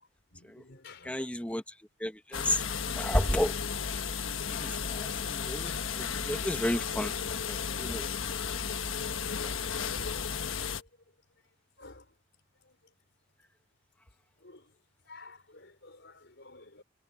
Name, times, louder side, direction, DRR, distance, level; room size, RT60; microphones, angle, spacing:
voice 1, 0.3-1.3 4.4-5.2 9.9-10.3 10.7-10.9 11.8-12.1 12.7-12.8 14.4-14.7 15.1-16.8, left 2 dB, 60° left, 5.6 m, -52 dB
voice 2, 1.0-1.6 2.0-2.6 2.9-3.5 4.5-7.1 7.5-8.1 9.4-9.5, left 1 dB, 5° left, 1.4 m, -32 dB
sound 1, 2.3-10.8, left 6 dB, 85° left, 1.3 m, -34 dB
head